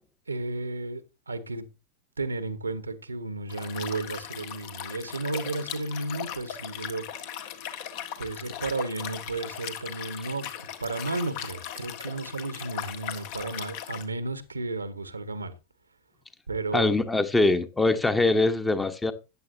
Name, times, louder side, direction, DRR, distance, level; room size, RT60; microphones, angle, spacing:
voice 1, 0.3-1.0 1.3-1.7 2.2-7.0 8.2-15.5 16.5-16.9, right 2 dB, 80° right, 1.2 m, -33 dB
Liquid, 3.5-14.0, left 10 dB, 50° left, 1.5 m, -38 dB
voice 2, 16.7-19.1, left 2 dB, 10° left, 1.1 m, -23 dB
14.0 x 9.7 x 2.7 m
figure-of-eight pair, 90°, 0 cm